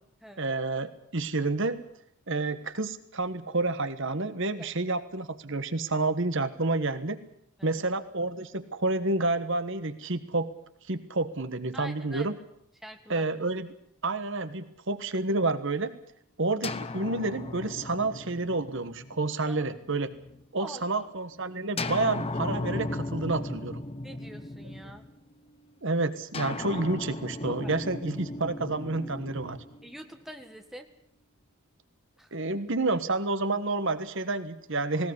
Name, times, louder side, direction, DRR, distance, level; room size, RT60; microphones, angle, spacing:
voice 1, 0.4-1.8 2.3-7.2 7.6-10.5 10.9-12.3 13.1-13.7 14.0-15.9 16.4-20.1 20.5-23.8 25.8-29.6 32.3-35.1, right 2 dB, 60° right, 11 dB, 1.4 m, -29 dB
voice 2, 11.7-12.3 12.8-13.3 19.5-19.6 20.5-21.1 24.0-25.1 27.4-27.8 29.8-30.9 32.2-32.4, equal, ahead, 4 dB, 1.7 m, -45 dB
sound 1, 16.6-20.4 21.8-25.3 26.3-30.5, left 2 dB, 25° left, 0.9 m, -36 dB
19.0 x 18.0 x 9.6 m, 0.68 s
head